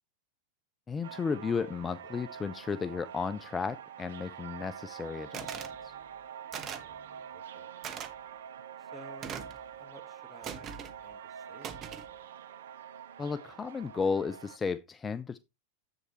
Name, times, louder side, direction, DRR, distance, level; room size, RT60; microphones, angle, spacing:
voice 1, 0.9-5.5 5.8-5.9 13.2-15.4, left 5 dB, 15° left, 0.4 m, -34 dB
sound 1, 1.0-14.6, right 8 dB, 60° right, 0.5 m, -46 dB
sound 2, 5.3-5.8 6.5-6.9 7.8-8.1 9.2-9.6 10.4-10.9 11.6-12.1, right 8 dB, 30° right, 1.0 m, -40 dB
voice 2, 6.7-7.8 8.8-9.4 9.7-10.7 11.0-12.2, equal, 5° right, 1.3 m, -55 dB
10.0 x 7.8 x 3.0 m
figure-of-eight pair, 90°, 0 cm